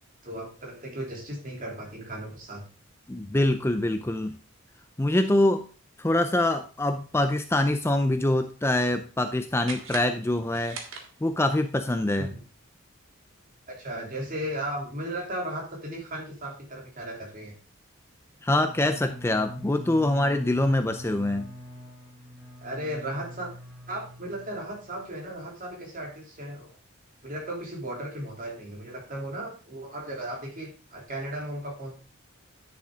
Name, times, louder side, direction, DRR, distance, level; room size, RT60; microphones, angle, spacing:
voice 1, 0.2-2.6 12.2-12.4 13.7-17.5 22.6-23.5 23.9-26.8 27.2-31.9, right 1 dB, 40° right, 0 dB, 3.1 m, -36 dB
voice 2, 3.1-4.3 5.0-5.6 6.0-10.8 11.2-12.3 18.4-21.5, left 1 dB, 10° left, 8 dB, 0.5 m, -24 dB
sound 1, 9.6-11.6, right 4 dB, 70° right, 1.9 m, -41 dB
Bowed string instrument, 18.5-25.2, equal, 5° right, 4.5 m, -44 dB
10.0 x 7.0 x 3.7 m, 0.36 s
head